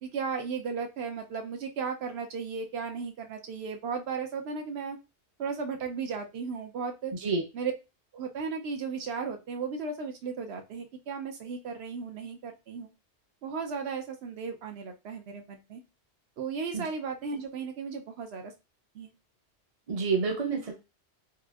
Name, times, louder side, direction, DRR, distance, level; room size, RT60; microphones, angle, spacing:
voice 1, 0.0-5.0 5.4-7.1 7.5-7.7 8.1-12.9 13.4-15.8 16.4-18.5 18.9-19.1, right 5 dB, 70° right, 5 dB, 0.9 m, -35 dB
voice 2, 7.1-7.4 16.7-16.8 19.9-20.7, right 4 dB, 40° right, 0 dB, 0.6 m, -28 dB
3.3 x 2.5 x 2.3 m, 0.27 s
omnidirectional pair, 1.1 m